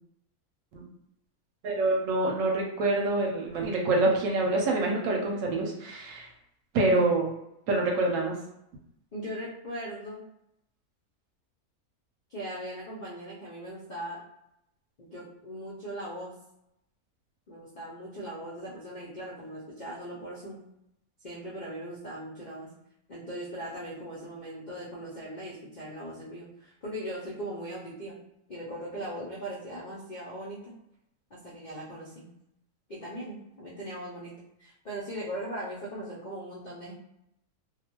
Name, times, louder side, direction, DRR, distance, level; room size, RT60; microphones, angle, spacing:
voice 1, 1.6-6.3 6.7-7.3 7.7-8.3, right 2 dB, 70° right, -1 dB, 0.9 m, -26 dB
voice 2, 9.1-10.2 12.3-14.2 15.0-16.3 17.5-20.6 21.2-22.7 23.1-28.2 28.5-30.7 31.3-32.3 32.9-34.3 34.6-36.9, right 1 dB, 60° left, -7 dB, 0.4 m, -39 dB
2.3 x 2.3 x 2.9 m, 0.83 s
omnidirectional pair, 1.6 m